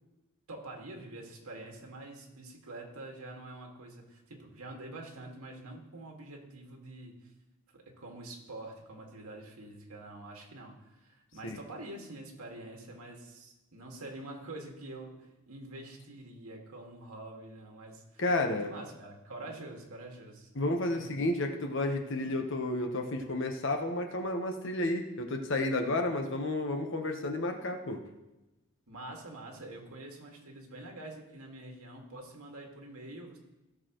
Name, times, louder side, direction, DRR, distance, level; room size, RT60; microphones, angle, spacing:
voice 1, 0.5-7.3 7.7-20.5 20.9-21.1 22.2-22.5 28.9-33.4, right 2 dB, 80° right, 0 dB, 2.0 m, -46 dB
voice 2, 18.2-18.7 20.6-28.0, left 2 dB, 55° left, 4 dB, 1.1 m, -31 dB
16.5 x 6.5 x 3.1 m, 1.0 s
head